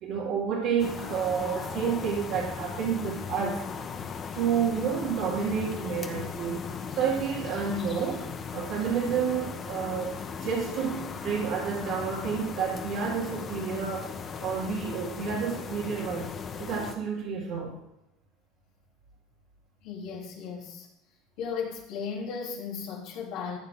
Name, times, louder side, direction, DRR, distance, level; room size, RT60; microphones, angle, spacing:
voice 1, 0.0-3.6 4.3-6.7 7.0-14.1 14.4-16.3 16.6-17.8, right 6 dB, 70° right, -6 dB, 2.6 m, -30 dB
sound 1, 0.8-17.0, left 6 dB, 35° left, 1.1 m, -38 dB
voice 2, 19.8-20.9 21.4-23.6, left 6 dB, 70° left, -1 dB, 3.1 m, -35 dB
14.5 x 8.5 x 3.7 m, 0.89 s
supercardioid pair, 120°, 0 cm